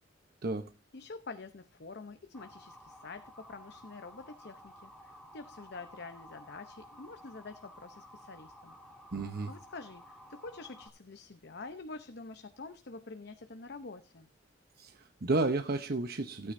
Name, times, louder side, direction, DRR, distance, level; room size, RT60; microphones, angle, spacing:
voice 1, 0.9-8.8 9.5-14.3, left 3 dB, 60° left, 0.8 m, -47 dB
Motor vehicle (road) / Siren, 2.3-10.9, equal, 5° left, 1.8 m, -54 dB
voice 2, 9.1-9.5 14.8-16.5, right 2 dB, 55° right, 0.8 m, -32 dB
16.5 x 9.4 x 2.7 m
head